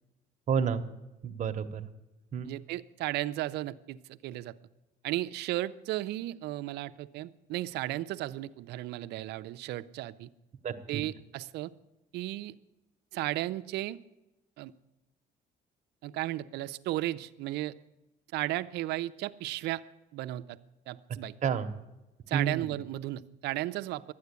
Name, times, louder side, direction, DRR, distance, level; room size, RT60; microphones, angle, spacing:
voice 1, 0.5-0.8 1.2-1.9 2.3-2.5 10.6-11.0 21.4-21.7 22.3-22.7, right 7 dB, 45° right, 7 dB, 1.1 m, -30 dB
voice 2, 2.4-4.0 4.2-4.5 5.0-10.3 10.9-11.7 12.1-12.5 13.1-14.0 14.6-14.7 16.0-17.7 18.3-19.8 20.1-20.6 20.9-21.3 22.3-24.1, right 16 dB, 80° right, 12 dB, 0.6 m, -34 dB
12.0 x 9.6 x 8.2 m, 1.0 s
cardioid pair, 110°, 17 cm